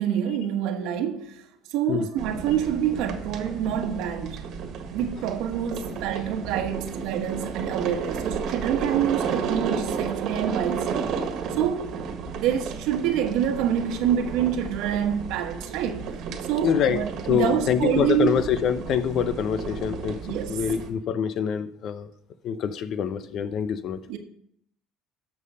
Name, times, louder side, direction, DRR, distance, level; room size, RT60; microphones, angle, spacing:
voice 1, 0.0-4.4 4.9-11.1 11.6-11.9 12.4-16.0 16.4-18.4 20.3-20.6 24.1-24.2, right 9 dB, 75° right, 1.3 m, -27 dB
sound 1, 2.2-20.9, right 6 dB, 60° right, 1.6 m, -33 dB
voice 2, 16.6-22.1 22.4-24.0, left 8 dB, 50° left, 0.8 m, -25 dB
13.0 x 5.6 x 5.6 m
cardioid pair, 125°, 0 cm